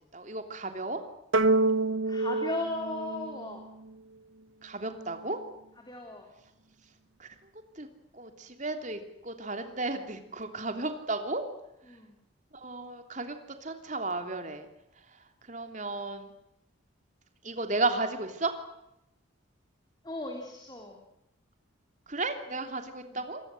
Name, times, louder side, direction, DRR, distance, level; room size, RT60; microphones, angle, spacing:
voice 1, 0.1-1.0 4.6-5.4 7.2-7.3 7.8-7.9 8.1-11.4 12.5-14.7 15.5-16.3 17.4-18.5 22.1-23.4, right 2 dB, 35° right, 6 dB, 3.2 m, -34 dB
sound 1, 1.3-3.9, right 2 dB, 75° right, 1.0 m, -27 dB
voice 2, 2.1-3.6 5.7-6.3 11.8-12.2 20.0-21.0 23.0-23.3, left 2 dB, 20° left, 2 dB, 3.5 m, -37 dB
26.5 x 20.5 x 7.8 m, 0.86 s
head